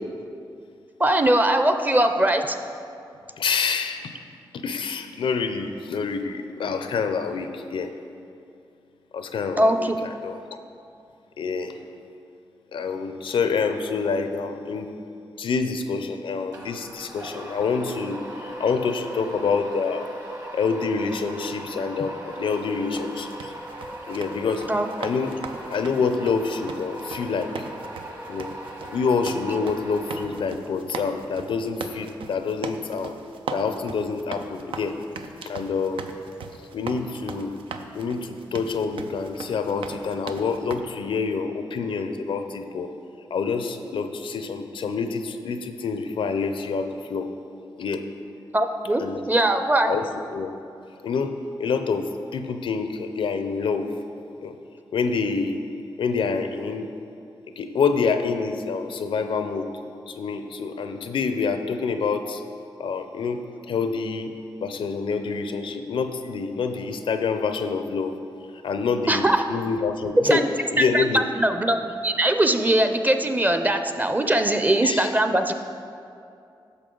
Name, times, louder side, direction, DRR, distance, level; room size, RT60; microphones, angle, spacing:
voice 1, 1.0-2.6 9.6-10.1 24.7-24.9 48.5-49.9 69.1-69.4 70.2-70.5 70.8-71.8 72.0-75.5, right 1 dB, 20° right, 7 dB, 0.6 m, -21 dB
voice 2, 3.4-4.1 4.5-7.9 9.1-10.4 11.4-11.8 12.7-14.9 15.4-20.1 20.5-23.5 24.1-24.7 25.0-25.4 25.7-27.7 28.3-28.5 28.9-33.2 33.5-35.0 35.5-36.0 36.7-37.6 37.9-42.9 43.3-47.3 47.8-48.1 49.0-49.2 49.8-50.0 50.3-50.5 51.0-53.9 54.4-54.6 54.9-55.6 56.0-56.9 57.6-59.7 60.1-62.4 62.8-64.3 64.6-68.1 68.6-70.4 70.7-71.3 74.8-75.1, left 5 dB, 85° left, 8 dB, 0.5 m, -27 dB
sound 1, 16.5-30.8, right 1 dB, 45° right, 1.6 m, -38 dB
sound 2, 22.5-40.8, right 5 dB, 90° right, 0.4 m, -39 dB
10.0 x 6.3 x 3.8 m, 2.5 s
cardioid pair, 70°, 9 cm